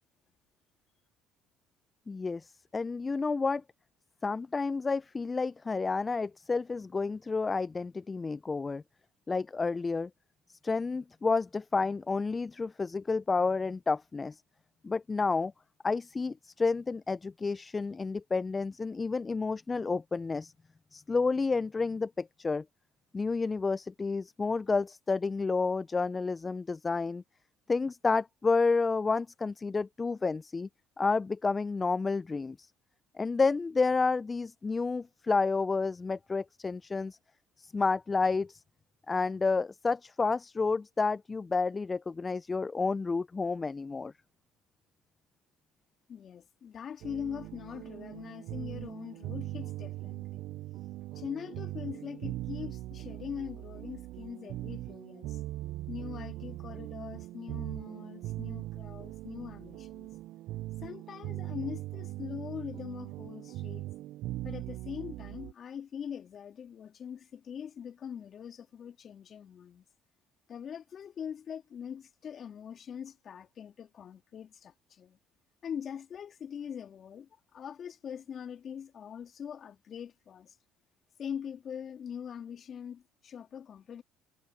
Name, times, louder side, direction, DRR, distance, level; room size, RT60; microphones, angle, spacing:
voice 1, 2.1-3.6 4.2-8.8 9.3-10.1 10.6-14.4 14.8-15.5 15.8-20.5 20.9-22.6 23.1-27.2 27.7-30.7 31.0-32.7 33.1-37.2 37.6-38.6 39.1-44.1, left 4 dB, 25° left, 0.4 m, -30 dB
voice 2, 46.1-50.4 51.1-55.4 55.9-60.1 60.8-63.9 64.4-69.8 70.5-75.2 75.6-80.6 81.2-84.0, left 8 dB, 50° left, 3.3 m, -42 dB
sound 1, 47.0-65.5, right 16 dB, 70° right, 0.4 m, -40 dB
supercardioid pair, 70°, 0 cm